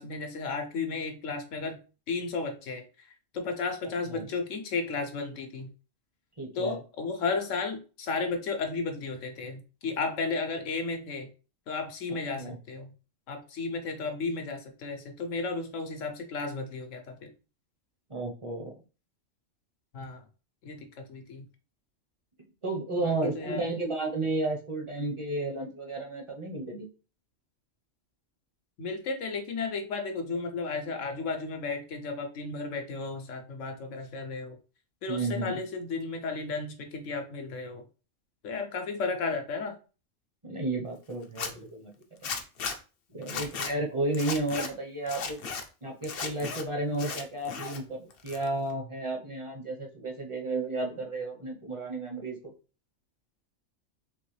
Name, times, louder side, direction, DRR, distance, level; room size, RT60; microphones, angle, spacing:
voice 1, 0.0-1.8 2.1-3.1 3.3-5.7 6.5-11.3 11.7-12.9 13.3-17.1 19.9-20.2 20.6-21.5 23.0-23.6 28.8-34.6 35.0-37.8 38.4-39.7, left 4 dB, 75° left, 4 dB, 1.1 m, -33 dB
voice 2, 6.4-6.8 12.4-12.6 18.1-18.7 22.6-26.9 35.1-35.6 40.4-41.9 43.1-45.4 45.8-52.5, right 2 dB, 30° right, 1 dB, 0.7 m, -32 dB
Zipper (clothing), 41.2-41.5 42.2-42.8 43.2-43.7 44.1-44.7 45.1-45.6 46.0-46.6 46.9-47.8 48.1-48.7, left 5 dB, 55° left, 0.7 m, -35 dB
3.8 x 3.0 x 3.1 m, 0.34 s
omnidirectional pair, 1.3 m